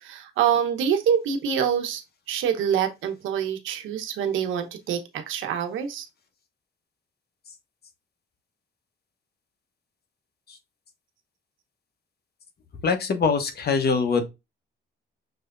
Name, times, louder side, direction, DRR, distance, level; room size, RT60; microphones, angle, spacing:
voice 1, 0.0-2.0 2.3-6.1, right 8 dB, 85° right, 1.1 m, -25 dB
voice 2, 12.8-14.2, left 5 dB, 55° left, 1.2 m, -23 dB
6.2 x 3.4 x 2.5 m
cardioid pair, 90°, 20 cm